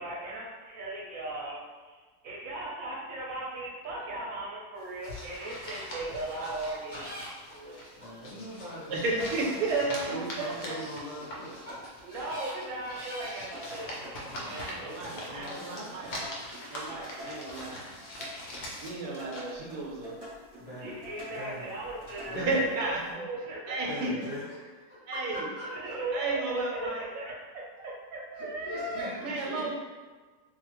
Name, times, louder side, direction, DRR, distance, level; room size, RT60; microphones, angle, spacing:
voice 1, 0.0-1.6 1.9-7.1 7.5-7.8 8.2-8.5 12.0-15.4 20.8-24.2 25.6-29.5, right 2 dB, 65° right, -4 dB, 1.0 m, -38 dB
sound 1, 4.8-23.1, equal, 60° left, 0.6 m, -44 dB
sound 2, 5.4-5.5 5.9-6.0 6.4-6.5 6.9-7.5 8.0-8.1 8.7-8.8 9.3-9.5 9.9-10.0 10.4-10.5 11.2-11.3 11.6-11.7 12.2-12.5 12.9-13.3 13.9-14.0 14.4-14.7 15.3-15.4, equal, 5° right, 1.1 m, -44 dB
voice 2, 8.0-9.2 9.9-11.7 14.3-16.2 20.6-21.0 21.3-21.7 22.3-22.7 23.9-25.9 28.3-29.7, equal, 25° left, -9 dB, 0.8 m, -41 dB
voice 3, 8.9-10.8 14.6-16.1 16.7-17.9 18.8-20.1 22.4-23.0 23.7-24.1 25.1-25.4 26.1-27.0 29.2-29.7, right 3 dB, 80° right, -2 dB, 1.2 m, -32 dB
sound 3, 9.2-9.9 11.2-11.9 13.2-22.6, equal, 35° right, 0.8 m, -46 dB
2.7 x 2.3 x 3.0 m, 1.4 s
omnidirectional pair, 1.7 m